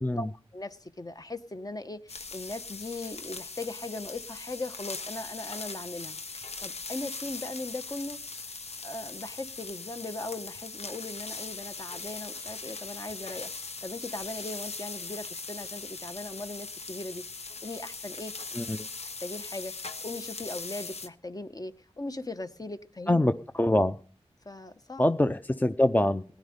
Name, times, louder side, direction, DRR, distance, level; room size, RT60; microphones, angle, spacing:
voice 1, 0.2-8.2 8.8-17.2 17.6-18.3 19.2-19.7 20.0-23.2 24.4-25.1, left 2 dB, 35° left, 9 dB, 1.2 m, -39 dB
sound 1, 2.1-21.1, left 4 dB, 70° left, 1.3 m, -40 dB
voice 2, 18.5-18.9 23.1-24.0 25.0-26.2, left 1 dB, 15° left, 9 dB, 0.6 m, -24 dB
17.0 x 10.5 x 5.2 m, 0.42 s
wide cardioid pair, 65°, 11 cm